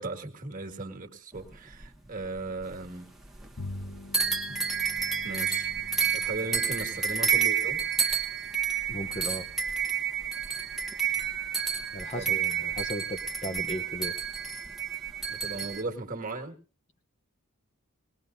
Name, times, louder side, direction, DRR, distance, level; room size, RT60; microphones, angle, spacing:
voice 1, 0.0-3.1 4.5-4.6 5.2-5.7 6.1-7.8 12.2-12.4 15.3-16.6, right 2 dB, 40° right, 4 dB, 1.7 m, -37 dB
sound 1, 1.3-2.9 3.2-3.9 4.1-15.8, right 6 dB, ahead, 1.0 m, -30 dB
Bowed string instrument, 3.6-9.2, left 2 dB, 85° left, 1.2 m, -46 dB
voice 2, 8.9-9.5 11.9-14.1, equal, 30° left, 8 dB, 0.8 m, -36 dB
20.0 x 19.0 x 2.6 m, 0.38 s
head